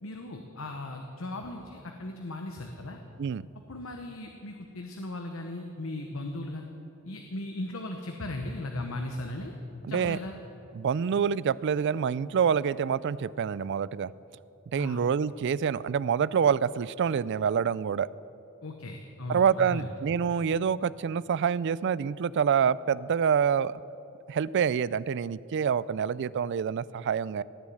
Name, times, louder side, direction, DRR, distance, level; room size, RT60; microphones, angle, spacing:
voice 1, 0.0-3.0 3.7-6.7 7.0-9.5 9.9-10.3 14.8-15.0 18.6-20.0, left 1 dB, 75° left, 4 dB, 1.1 m, -37 dB
voice 2, 9.9-10.2 10.8-14.1 14.7-18.1 19.3-23.8 24.3-27.4, right 7 dB, 60° right, 20 dB, 0.3 m, -26 dB
17.5 x 7.2 x 9.2 m, 2.9 s
head